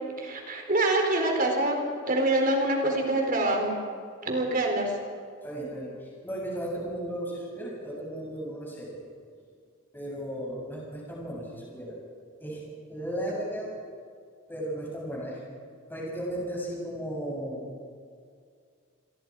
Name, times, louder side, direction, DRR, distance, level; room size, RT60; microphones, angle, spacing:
voice 1, 0.2-3.7 4.2-4.9, right 1 dB, 40° right, 2 dB, 4.3 m, -25 dB
voice 2, 5.4-9.0 9.9-12.0 12.4-12.6 12.9-13.7 14.5-15.4 15.9-17.7, right 1 dB, 10° left, -4 dB, 7.2 m, -35 dB
29.0 x 22.0 x 4.9 m, 2.2 s
head